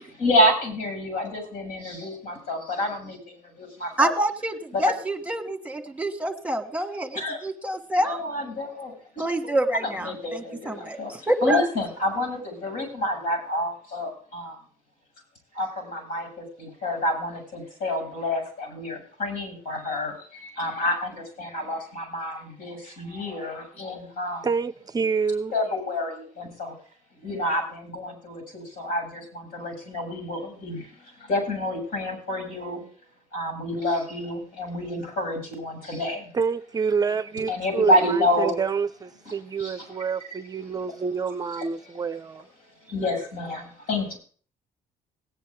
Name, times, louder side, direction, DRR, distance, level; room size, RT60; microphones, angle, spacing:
voice 1, 0.2-4.1 4.7-5.0 7.1-7.4 8.0-9.5 9.7-14.6 15.5-24.5 25.5-26.8 27.1-32.8 33.3-36.3 37.5-38.5 39.3-39.9 42.8-44.2, left 1 dB, 85° left, 7.2 m, -28 dB
voice 2, 4.0-8.2 9.2-11.6, right 1 dB, 10° right, 1.4 m, -27 dB
voice 3, 24.4-25.5 36.3-42.5, right 5 dB, 25° right, 0.5 m, -27 dB
18.0 x 9.4 x 3.6 m
cardioid pair, 120°, 14 cm